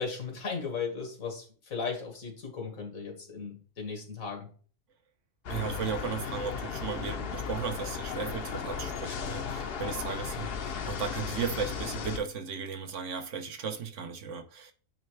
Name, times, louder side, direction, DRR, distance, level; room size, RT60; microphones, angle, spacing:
voice 1, 0.0-4.5, left 5 dB, 90° left, 2.1 m, -36 dB
sound 1, 5.4-12.2, left 6 dB, 55° left, 0.8 m, -35 dB
voice 2, 5.5-14.7, right 6 dB, 70° right, 1.1 m, -36 dB
8.8 x 3.3 x 3.2 m
omnidirectional pair, 1.4 m